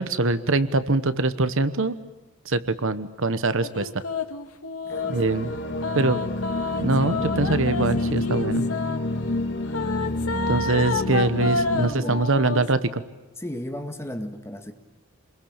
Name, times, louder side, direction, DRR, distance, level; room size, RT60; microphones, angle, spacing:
voice 1, 0.0-2.0 2.4-3.9 5.1-5.5 5.9-6.2 6.8-8.7 10.5-13.0, right 3 dB, 60° right, 13 dB, 1.1 m, -23 dB
sound 1, 3.6-5.2 5.8-9.0 9.7-12.7, left 4 dB, 80° left, 2.1 m, -29 dB
voice 2, 4.8-5.3 10.7-10.9 12.0-12.2 13.4-14.7, equal, 10° left, 6 dB, 1.8 m, -35 dB
sound 2, 4.9-11.9, left 2 dB, 55° left, 2.0 m, -28 dB
28.5 x 22.0 x 8.8 m, 1.1 s
head